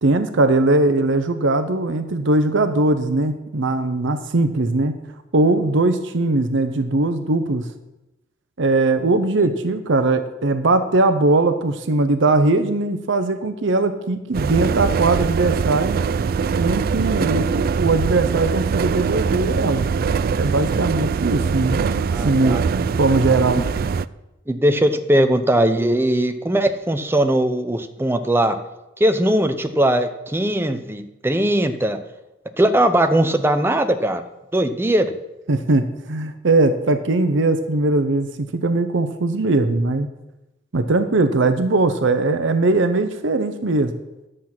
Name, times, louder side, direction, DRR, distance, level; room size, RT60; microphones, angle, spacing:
voice 1, 0.0-5.0 5.3-7.6 8.6-16.0 16.6-19.9 20.3-23.6 35.5-38.3 38.5-40.1 40.7-43.9, right 2 dB, 65° right, 9 dB, 0.8 m, -20 dB
sound 1, 14.3-24.1, right 5 dB, 50° right, 0.3 m, -22 dB
voice 2, 21.9-22.6 23.6-23.7 24.5-28.6 29.0-32.0 32.6-34.2 34.5-35.1, right 1 dB, 10° right, 7 dB, 0.7 m, -19 dB
11.0 x 7.6 x 5.9 m, 0.95 s
head